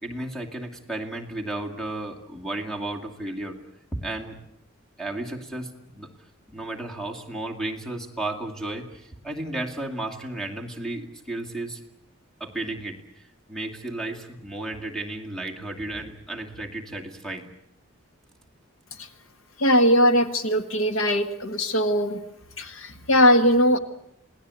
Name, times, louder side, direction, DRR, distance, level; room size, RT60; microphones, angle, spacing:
voice 1, 0.0-3.6 3.9-4.4 5.0-6.1 6.5-11.8 12.4-13.2 13.5-17.5, right 2 dB, ahead, 3 dB, 2.3 m, -33 dB
voice 2, 19.6-22.2 22.6-23.8, equal, 75° left, 9 dB, 1.7 m, -20 dB
28.0 x 18.5 x 8.2 m, 0.78 s
head